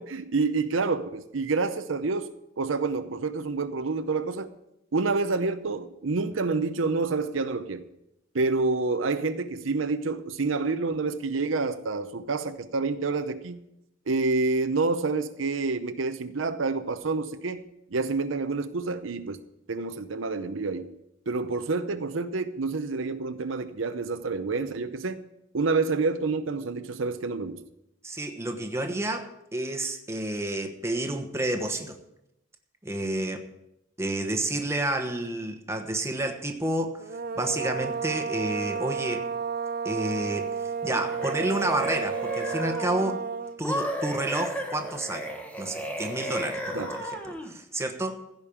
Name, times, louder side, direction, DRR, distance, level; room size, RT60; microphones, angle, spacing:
voice 1, 0.0-4.5 4.9-7.9 8.3-13.6 14.1-17.6 17.9-19.4 19.7-20.9 21.3-25.2 25.5-27.6 46.7-46.9, right 3 dB, 80° right, 0.7 m, -28 dB
voice 2, 28.0-32.0 32.8-33.4 34.0-37.0 37.4-39.3 39.8-40.5 40.8-43.2 43.6-48.1, right 1 dB, 15° right, 1.1 m, -30 dB
sound 1, 37.0-43.6, right 6 dB, 45° right, 0.5 m, -32 dB
sound 2, 40.9-43.1 43.6-47.5, equal, 5° left, 1.3 m, -34 dB
15.5 x 5.3 x 8.6 m
head